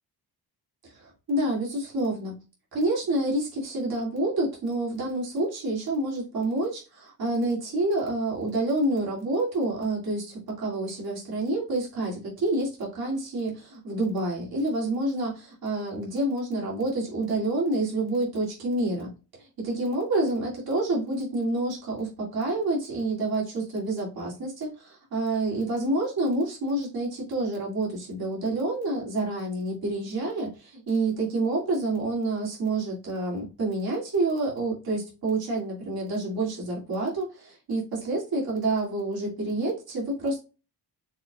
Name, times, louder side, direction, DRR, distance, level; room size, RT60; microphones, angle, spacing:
voice 1, 0.8-2.4 2.7-19.1 19.4-40.4, right 2 dB, 65° right, -4 dB, 2.6 m, -28 dB
5.9 x 3.4 x 2.4 m, 0.31 s
cardioid pair, 100°, 39 cm